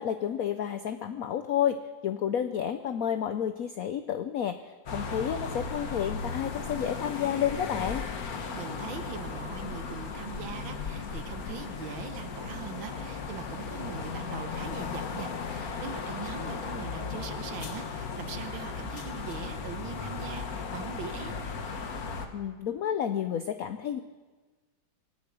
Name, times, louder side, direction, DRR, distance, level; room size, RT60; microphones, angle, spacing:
voice 1, 0.0-8.0 22.3-24.0, left 9 dB, 65° left, 9 dB, 0.9 m, -30 dB
sound 1, 4.9-22.3, left 5 dB, 50° left, 1.6 m, -36 dB
voice 2, 8.5-21.3, right 8 dB, 90° right, 9 dB, 1.8 m, -42 dB
24.5 x 8.5 x 6.2 m, 1.3 s
omnidirectional pair, 2.1 m